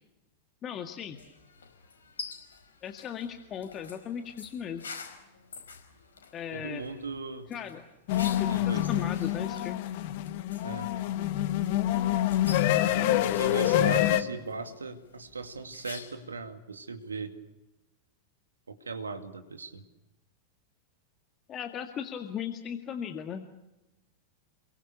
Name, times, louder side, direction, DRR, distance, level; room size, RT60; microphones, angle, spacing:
voice 1, 0.6-1.2 2.8-4.8 6.3-6.8 7.5-7.8 8.4-9.8 21.5-23.5, left 8 dB, 30° left, 6 dB, 1.9 m, -37 dB
sound 1, 1.1-16.4, left 5 dB, 70° left, 4.9 m, -48 dB
voice 2, 6.5-7.5 8.5-9.1 10.6-11.0 12.8-17.3 18.7-19.8, right 3 dB, 75° right, 8 dB, 2.4 m, -38 dB
sound 2, 8.1-14.2, left 13 dB, 50° left, 1.5 m, -26 dB
28.5 x 22.5 x 6.9 m, 0.99 s
figure-of-eight pair, 90°, 0 cm